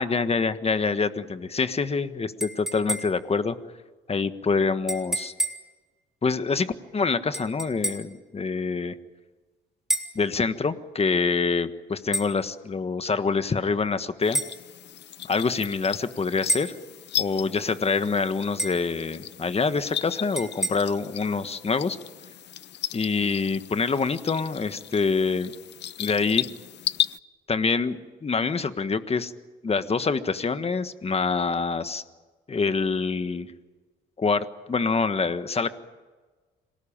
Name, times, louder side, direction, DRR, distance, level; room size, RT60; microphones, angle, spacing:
voice 1, 0.0-3.6 4.1-5.3 6.2-9.0 10.1-14.4 15.2-16.7 17.2-22.0 22.9-25.5 26.0-26.5 27.5-29.3 29.6-32.0 32.5-33.5 34.2-35.7, left 4 dB, 30° left, 11 dB, 1.5 m, -26 dB
sound 1, 2.4-3.3 4.9-5.7 7.3-8.2 9.9-10.2 12.1-12.3 14.3-14.6 16.5-16.8 18.6-18.9 20.4-20.7, right 1 dB, ahead, 3.5 m, -29 dB
sound 2, 14.2-27.2, left 11 dB, 60° left, 0.7 m, -35 dB
26.5 x 18.5 x 8.9 m, 1.3 s
cardioid pair, 90°, 20 cm